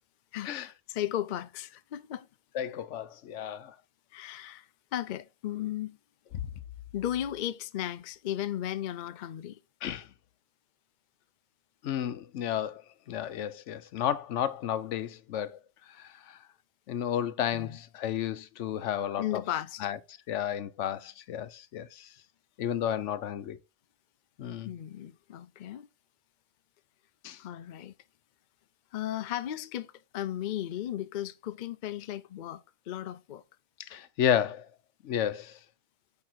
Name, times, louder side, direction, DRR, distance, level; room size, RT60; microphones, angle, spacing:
voice 1, 0.3-2.3 4.1-4.7 4.9-6.0 6.9-9.6 17.5-17.8 19.2-19.9 24.6-25.9 27.4-27.9 28.9-33.4, left 12 dB, 60° left, 0.5 m, -35 dB
voice 2, 2.5-3.7 9.8-10.1 11.8-12.8 13.1-15.6 16.0-16.1 16.9-19.4 19.8-20.0 20.3-22.1 22.6-23.6 24.4-24.7 27.2-27.4 33.9-34.7 35.0-35.5, left 10 dB, 80° left, 1.0 m, -32 dB
8.8 x 3.5 x 4.4 m
omnidirectional pair, 1.3 m